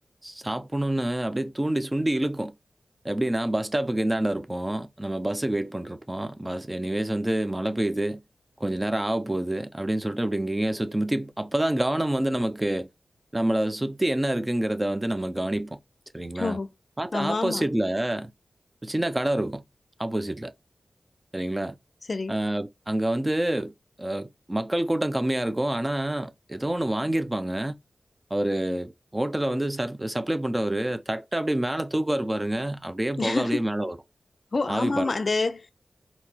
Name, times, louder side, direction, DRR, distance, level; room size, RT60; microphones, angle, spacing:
voice 1, 0.2-2.5 3.0-8.2 8.6-12.9 13.3-15.8 16.1-16.6 17.0-18.3 18.8-19.6 20.0-20.5 21.3-21.7 22.3-23.7 24.0-27.7 28.3-34.0 34.7-35.1, right 1 dB, 20° right, 0.5 m, -27 dB
voice 2, 16.3-16.7 17.1-17.7 22.1-22.4 33.2-33.6 34.5-35.7, left 3 dB, 55° left, 0.4 m, -27 dB
4.2 x 2.8 x 2.8 m
cardioid pair, 50°, 0 cm